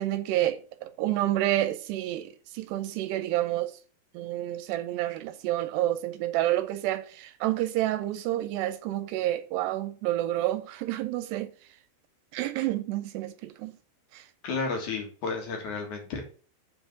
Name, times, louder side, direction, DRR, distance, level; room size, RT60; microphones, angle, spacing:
voice 1, 0.0-3.8 4.1-11.8 12.3-13.8 14.1-14.3, right 14 dB, 80° right, 2.7 m, -29 dB
voice 2, 14.4-16.2, left 4 dB, 55° left, 2.6 m, -32 dB
7.6 x 4.7 x 6.9 m
omnidirectional pair, 5.1 m